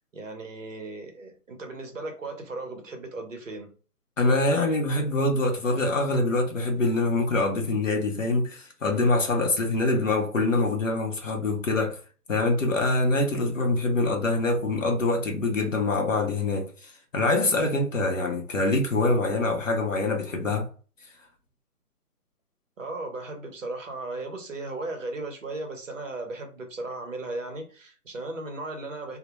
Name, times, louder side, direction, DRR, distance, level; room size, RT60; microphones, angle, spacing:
voice 1, 0.1-3.7 22.8-29.2, right 2 dB, 55° right, 0.7 m, -36 dB
voice 2, 4.2-12.0 12.3-20.7, left 2 dB, 55° left, 0.6 m, -25 dB
2.1 x 2.0 x 2.9 m
hypercardioid pair, 175°, 47 cm